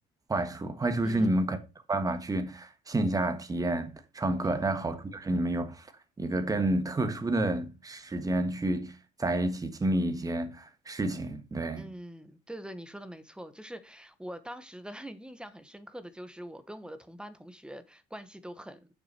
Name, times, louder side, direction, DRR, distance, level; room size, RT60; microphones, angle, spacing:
voice 1, 0.3-1.6 1.9-5.9 6.2-11.9, right 1 dB, 20° right, 1.5 m, -29 dB
voice 2, 1.0-1.4 4.4-4.7 11.7-18.9, right 1 dB, 5° right, 1.0 m, -44 dB
6.8 x 6.4 x 4.4 m
cardioid pair, 110°, 17 cm